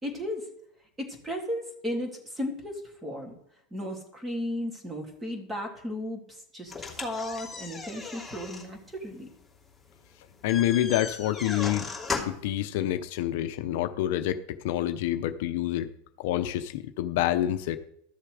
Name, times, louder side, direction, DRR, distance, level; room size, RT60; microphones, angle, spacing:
voice 1, 0.0-0.5 1.0-3.3 3.7-9.3, left 1 dB, 15° right, 2 dB, 2.9 m, -35 dB
sound 1, 6.7-12.5, left 4 dB, 5° left, 2.8 m, -37 dB
voice 2, 10.4-11.9 12.2-15.9 16.2-17.8, left 13 dB, 65° left, 10 dB, 0.7 m, -27 dB
13.0 x 6.8 x 4.9 m, 0.72 s
supercardioid pair, 120°, 0 cm